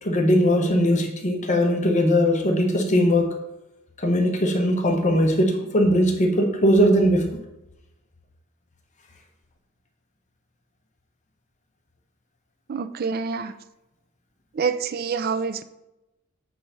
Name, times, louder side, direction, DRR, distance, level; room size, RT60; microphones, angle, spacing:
voice 1, 0.0-3.3 4.0-7.3, equal, 35° left, 3 dB, 0.8 m, -20 dB
voice 2, 12.7-13.5 14.6-15.6, right 5 dB, 45° right, 12 dB, 0.4 m, -26 dB
8.5 x 3.4 x 5.4 m, 0.92 s
head